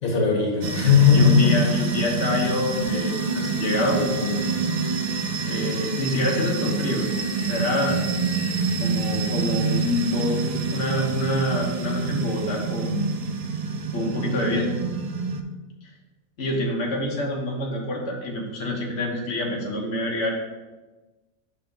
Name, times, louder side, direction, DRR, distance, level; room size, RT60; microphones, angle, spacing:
voice 1, 0.0-1.6, left 6 dB, 85° left, 0 dB, 1.8 m, -17 dB
sound 1, 0.6-15.4, right 4 dB, 55° right, 0.4 m, -27 dB
voice 2, 1.1-4.4 5.4-7.1 7.4-8.0 8.8-13.1 13.9-14.7 16.4-20.3, left 1 dB, 60° left, -2 dB, 1.4 m, -26 dB
5.8 x 4.7 x 5.3 m, 1.2 s
omnidirectional pair, 1.4 m